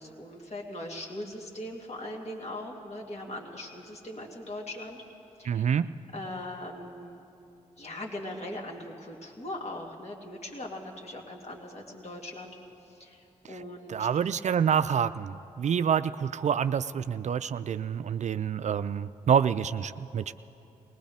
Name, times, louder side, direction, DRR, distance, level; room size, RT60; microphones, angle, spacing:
voice 1, 0.0-5.0 5.4-5.6 6.1-7.2 7.8-12.6 12.9-14.0, left 1 dB, 45° left, -1 dB, 2.6 m, -40 dB
voice 2, 5.4-5.9 13.9-20.3, right 8 dB, 50° right, 13 dB, 0.4 m, -27 dB
21.0 x 19.0 x 3.5 m, 2.8 s
hypercardioid pair, 45°, 16 cm